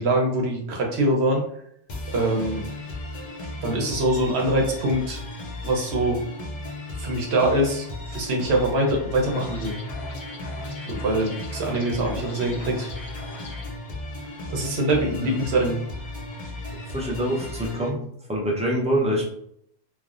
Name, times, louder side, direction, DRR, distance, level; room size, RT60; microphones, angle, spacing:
voice 1, 0.0-1.4 2.1-2.6 3.6-5.2 5.6-6.2 7.0-7.9 8.1-9.7 10.9-12.9 14.5-15.8, right 1 dB, 75° right, 0 dB, 0.9 m, -23 dB
sound 1, 1.9-17.9, left 2 dB, 50° left, 0.6 m, -35 dB
sound 2, 9.3-13.7, left 1 dB, 80° left, 0.9 m, -40 dB
voice 2, 16.9-18.0 18.3-19.2, right 1 dB, 10° right, -3 dB, 0.4 m, -25 dB
3.2 x 2.1 x 2.4 m, 0.70 s
omnidirectional pair, 1.1 m